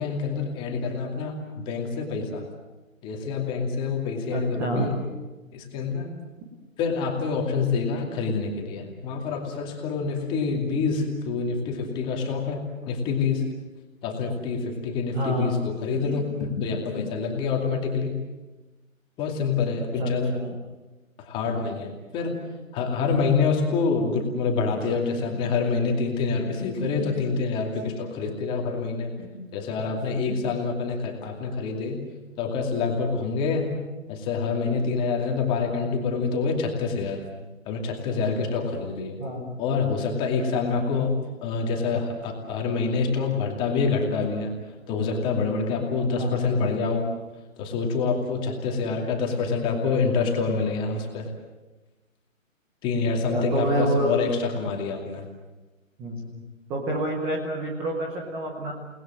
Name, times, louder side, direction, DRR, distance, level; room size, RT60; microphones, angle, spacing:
voice 1, 0.0-2.4 3.0-5.0 5.5-6.1 6.8-13.4 14.0-18.1 19.2-20.3 21.2-22.4 22.7-32.0 32.4-33.7 34.1-37.2 37.7-39.2 39.6-44.5 44.9-47.1 47.6-51.3 52.8-55.2, left 4 dB, 10° left, 2 dB, 2.5 m, -26 dB
voice 2, 4.3-4.9 15.1-15.6 19.8-20.6 39.2-39.6 46.1-46.6 53.3-54.1 56.0-56.4 56.7-58.7, right 1 dB, 5° right, -1 dB, 0.8 m, -28 dB
29.0 x 19.5 x 7.6 m, 1.1 s
figure-of-eight pair, 150°, 41 cm